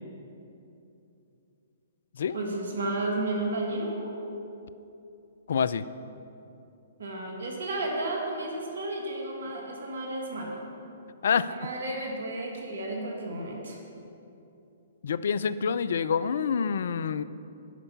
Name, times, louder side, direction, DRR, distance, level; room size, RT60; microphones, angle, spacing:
voice 1, 2.3-4.1 7.0-10.6 11.5-13.8, right 2 dB, 70° right, 0 dB, 1.8 m, -32 dB
voice 2, 5.5-5.8 11.2-11.5 15.0-17.2, left 6 dB, 60° left, 15 dB, 0.4 m, -27 dB
11.0 x 5.4 x 7.1 m, 2.8 s
figure-of-eight pair, 120°, 0 cm